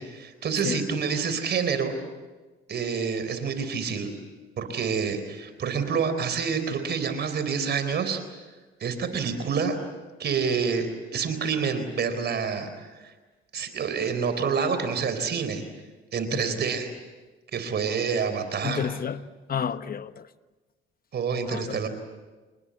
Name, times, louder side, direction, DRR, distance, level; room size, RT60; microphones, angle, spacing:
voice 1, 0.0-1.9 2.7-4.1 4.6-8.2 8.8-9.8 10.2-12.9 13.5-15.6 16.1-16.9 17.5-18.8 21.1-21.9, right 6 dB, 60° right, 4.0 m, -27 dB
voice 2, 18.6-19.2 19.5-20.3 21.5-21.9, left 7 dB, 50° left, 1.1 m, -31 dB
27.0 x 20.0 x 8.7 m
cardioid pair, 90°, 20 cm